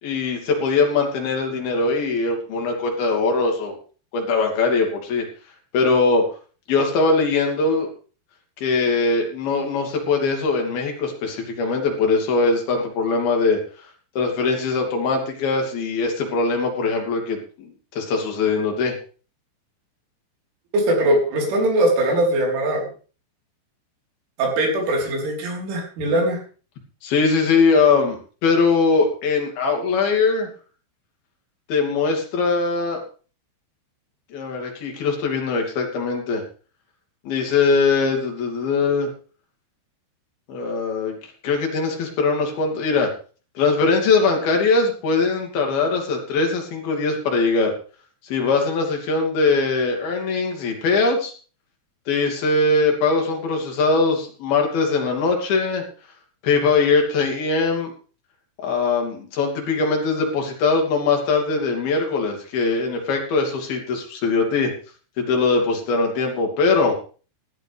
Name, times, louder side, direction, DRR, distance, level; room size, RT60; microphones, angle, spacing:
voice 1, 0.0-3.8 4.1-5.2 5.7-6.2 6.7-7.9 8.6-13.6 14.2-18.9 27.0-30.5 31.7-33.0 34.3-36.4 37.3-39.1 40.5-41.1 41.4-43.1 43.6-47.7 48.2-51.3 52.1-55.8 56.4-57.9 58.6-64.7 65.2-67.0, left 4 dB, 55° left, 2 dB, 4.4 m, -21 dB
voice 2, 20.7-22.9 24.4-26.4, right 1 dB, 75° right, 0 dB, 6.6 m, -21 dB
16.5 x 12.5 x 3.5 m, 0.38 s
omnidirectional pair, 5.6 m